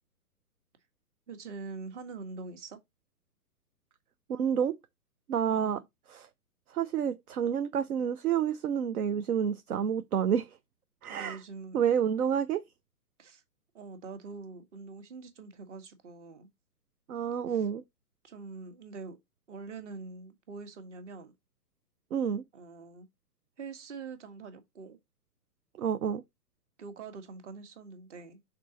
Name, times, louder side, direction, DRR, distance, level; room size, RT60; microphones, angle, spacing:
voice 1, 1.3-2.8 5.5-5.8 11.1-11.8 13.2-13.4 13.7-16.5 17.5-17.7 18.2-19.2 19.5-21.3 22.5-23.1 23.6-25.0 26.8-28.4, right 4 dB, 45° right, 1.6 m, -44 dB
voice 2, 4.3-4.7 5.3-5.8 6.1-6.3 6.7-10.5 11.0-11.4 11.7-12.6 17.1-17.8 22.1-22.4 25.8-26.2, right 8 dB, 65° right, 0.7 m, -29 dB
6.1 x 3.9 x 4.2 m
figure-of-eight pair, 130°, 48 cm